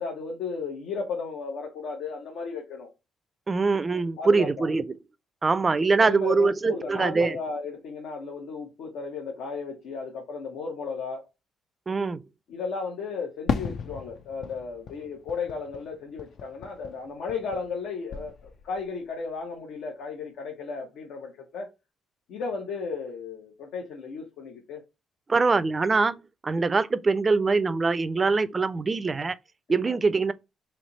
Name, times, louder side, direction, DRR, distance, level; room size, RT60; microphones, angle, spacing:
voice 1, 0.0-2.9 4.2-4.7 6.0-11.3 12.5-21.7 22.3-24.8 29.8-30.0, left 4 dB, 85° left, 1.0 m, -34 dB
voice 2, 3.5-5.0 5.4-7.4 11.9-12.2 25.3-26.2 26.4-29.3 29.7-30.3, right 4 dB, 30° right, 0.4 m, -23 dB
Fireworks, 13.5-17.8 18.1-18.9, left 6 dB, 65° left, 0.4 m, -35 dB
3.3 x 3.0 x 3.9 m
cardioid pair, 90°, 0 cm